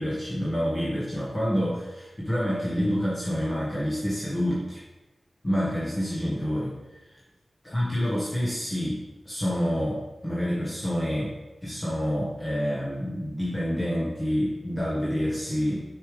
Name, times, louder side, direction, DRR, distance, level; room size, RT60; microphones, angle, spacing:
voice 1, 0.0-4.8 5.4-6.7 7.6-11.3 11.6-15.8, equal, 25° left, -8 dB, 1.5 m, -28 dB
6.7 x 5.6 x 3.4 m, 1.1 s
wide cardioid pair, 70°, 0 cm